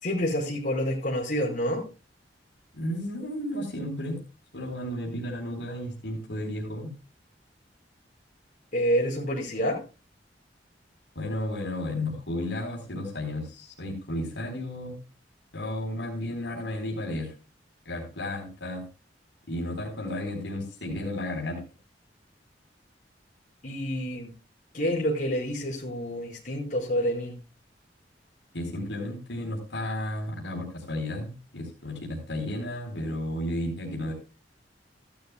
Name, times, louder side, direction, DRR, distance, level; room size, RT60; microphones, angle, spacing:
voice 1, 0.0-1.8 8.7-9.8 23.6-24.3 24.7-27.3, equal, 45° left, -2 dB, 5.1 m, -28 dB
voice 2, 2.7-4.2 4.5-6.9 11.1-14.9 15.5-17.3 17.8-18.9 19.5-21.6 28.5-34.1, left 1 dB, 80° left, -1 dB, 4.4 m, -33 dB
15.5 x 12.5 x 2.3 m, 0.32 s
head